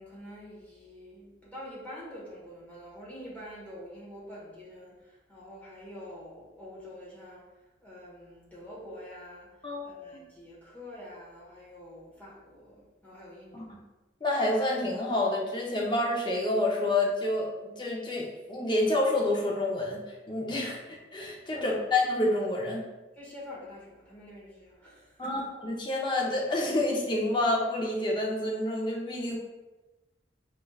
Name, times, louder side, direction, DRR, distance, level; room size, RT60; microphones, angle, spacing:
voice 1, 0.0-7.4 7.8-13.7 21.5-21.8 23.1-25.5, left 1 dB, 10° left, -7 dB, 1.2 m, -46 dB
voice 2, 9.6-10.0 13.5-13.7 14.2-17.5 17.8-20.0 20.3-22.9 25.2-29.4, left 2 dB, 25° left, -2 dB, 0.6 m, -28 dB
5.0 x 3.2 x 2.3 m, 1.1 s
head